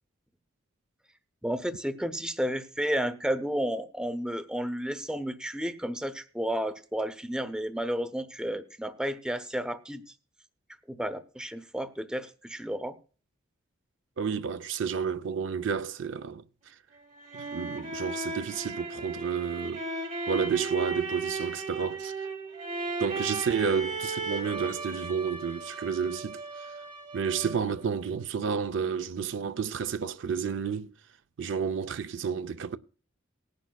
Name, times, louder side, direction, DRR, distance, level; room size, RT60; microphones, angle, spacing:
voice 1, 1.4-10.0 10.9-13.0, equal, 5° right, 0.5 m, -32 dB
voice 2, 14.2-16.4 17.3-19.9 20.3-22.1 23.0-26.4 27.1-30.9 31.4-32.8, right 6 dB, 60° right, 0.4 m, -30 dB
sound 1, 17.0-27.8, right 3 dB, 40° right, 1.3 m, -36 dB
19.5 x 10.5 x 2.3 m
head